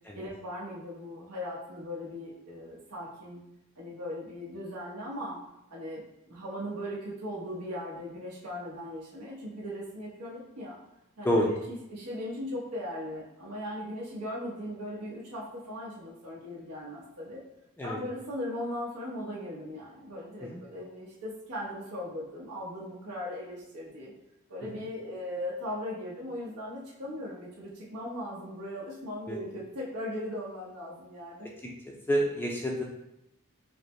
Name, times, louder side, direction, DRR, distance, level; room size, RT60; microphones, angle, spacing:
voice 1, 0.1-3.4 3.8-5.4 5.7-10.8 11.2-17.4 17.8-24.1 24.5-31.5, left 1 dB, 90° right, -5 dB, 1.0 m, -38 dB
voice 2, 31.9-32.8, equal, 10° left, -2 dB, 0.4 m, -28 dB
4.9 x 2.0 x 3.1 m, 0.87 s
head